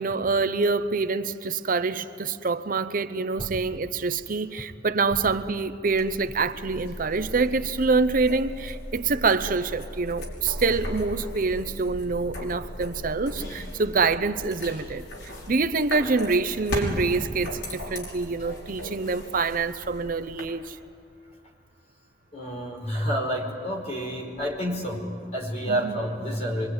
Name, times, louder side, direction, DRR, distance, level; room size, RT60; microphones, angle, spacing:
voice 1, 0.0-20.8 25.6-26.0, right 4 dB, 50° right, 0.7 m, -26 dB
sound 1, 5.9-20.4, equal, 85° left, 5.8 m, -37 dB
voice 2, 22.3-25.0 25.3-26.7, equal, 40° left, 5.2 m, -29 dB
25.5 x 24.0 x 9.6 m
head